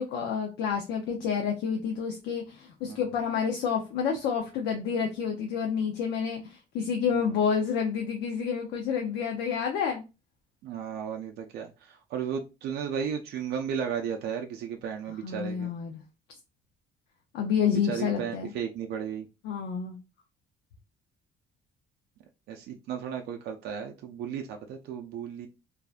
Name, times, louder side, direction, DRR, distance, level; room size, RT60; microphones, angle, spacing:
voice 1, 0.0-10.0 15.2-16.0 17.3-18.5 19.4-20.0, left 7 dB, 80° left, 0.5 m, -29 dB
voice 2, 7.1-7.4 10.6-15.7 17.7-19.3 22.5-25.5, right 7 dB, 75° right, 0.4 m, -34 dB
2.6 x 2.1 x 2.3 m
cardioid pair, 110°, 17 cm